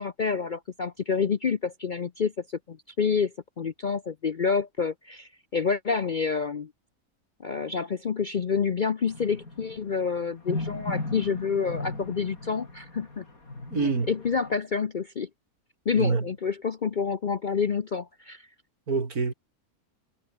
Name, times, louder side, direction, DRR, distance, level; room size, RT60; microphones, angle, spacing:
voice 1, 0.0-6.7 7.4-13.3 13.7-15.3 15.9-18.5, left 5 dB, 45° left, 0.7 m, -28 dB
sound 1, 9.1-14.5, left 2 dB, 65° left, 5.5 m, -37 dB
voice 2, 13.7-14.1 16.0-16.3 18.9-19.3, right 4 dB, 75° right, 3.4 m, -26 dB
omnidirectional pair, 1.6 m